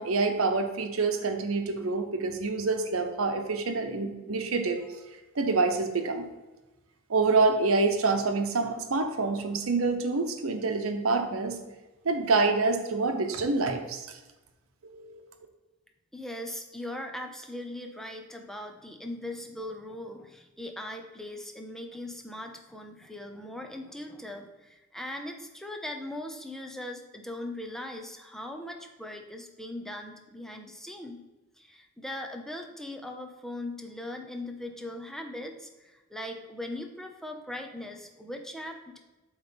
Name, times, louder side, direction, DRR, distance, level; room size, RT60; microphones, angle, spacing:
voice 1, 0.0-4.8 5.4-6.3 7.1-11.6 12.0-14.1 14.9-15.2, right 3 dB, 90° right, 6 dB, 0.8 m, -27 dB
voice 2, 16.1-31.2 31.6-39.1, left 1 dB, ahead, 3 dB, 0.7 m, -40 dB
8.0 x 3.2 x 5.2 m, 1.1 s
head